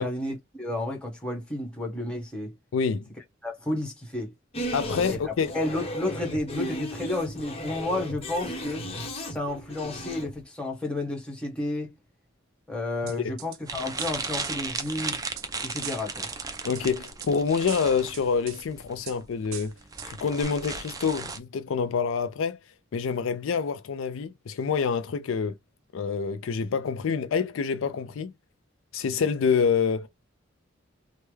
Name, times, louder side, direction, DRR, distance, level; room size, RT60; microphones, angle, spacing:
voice 1, 0.0-2.5 3.4-4.3 5.0-5.2 5.5-8.9 9.3-11.9 12.7-15.2 15.6-16.3, left 2 dB, 5° left, 1.2 m, -31 dB
voice 2, 2.7-3.1 4.7-5.5 13.0-13.3 16.6-19.7 20.0-22.6 22.9-25.5 25.9-28.3 28.9-30.1, left 6 dB, 70° left, 0.4 m, -27 dB
sound 1, 4.5-10.4, equal, 30° left, 0.9 m, -35 dB
sound 2, 13.1-13.6 14.0-15.5 15.8-16.4 16.8-17.3 17.7-18.7 19.1-19.2 19.5-20.1 20.4-20.5, right 11 dB, 85° right, 0.4 m, -41 dB
sound 3, 13.7-21.4, right 4 dB, 20° right, 0.5 m, -36 dB
3.3 x 2.1 x 3.1 m
head